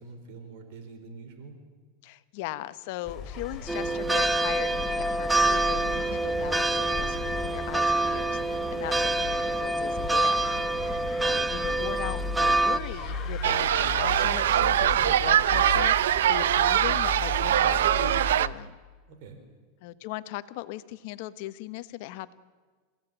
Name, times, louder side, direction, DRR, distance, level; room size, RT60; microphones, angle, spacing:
voice 1, 0.0-1.5 10.7-11.0 19.1-19.4, right 4 dB, 60° right, 7 dB, 4.4 m, -45 dB
voice 2, 2.0-10.4 10.8-11.0 11.2-18.8 19.8-22.3, left 16 dB, 60° left, 13 dB, 1.1 m, -39 dB
sound 1, 3.1-18.4, left 3 dB, 25° left, 3.1 m, -36 dB
sound 2, 3.7-12.8, right 2 dB, 5° right, 0.9 m, -26 dB
sound 3, 13.4-18.5, right 11 dB, 85° right, 0.7 m, -23 dB
28.0 x 17.0 x 9.1 m, 1.5 s
supercardioid pair, 140°, 0 cm